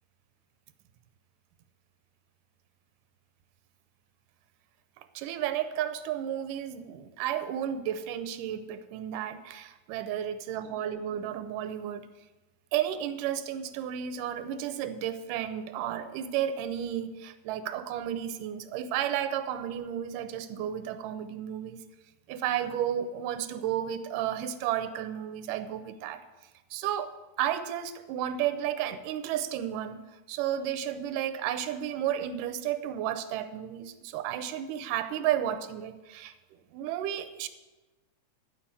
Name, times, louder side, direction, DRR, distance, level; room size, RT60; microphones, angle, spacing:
voice 1, 5.2-12.1 12.7-21.8 22.3-26.2 26.7-27.1 27.4-30.0 30.3-36.3 36.7-37.5, right 10 dB, 85° right, 9 dB, 2.3 m, -32 dB
11.5 x 5.6 x 8.6 m, 1.1 s
omnidirectional pair, 3.7 m